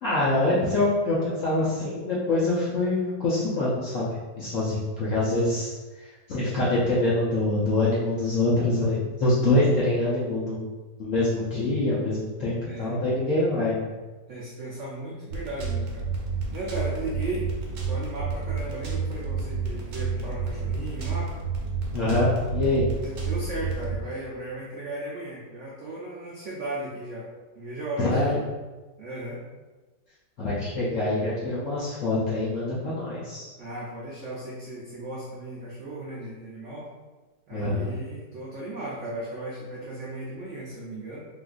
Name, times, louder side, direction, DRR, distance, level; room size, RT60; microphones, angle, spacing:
voice 1, 0.0-5.7 6.0-10.7 11.0-13.9 21.9-22.9 28.0-28.3 30.4-33.5 37.5-37.9, left 2 dB, 65° left, -8 dB, 0.8 m, -25 dB
voice 2, 12.7-13.0 14.3-16.1 16.5-17.5 17.9-21.3 23.0-27.3 27.5-28.3 29.0-29.4 33.6-36.9 37.5-41.3, right 1 dB, 90° right, -5 dB, 0.6 m, -36 dB
sound 1, 15.3-24.0, right 5 dB, 70° right, 1.1 m, -30 dB
3.6 x 2.5 x 2.4 m, 1.2 s
omnidirectional pair, 1.9 m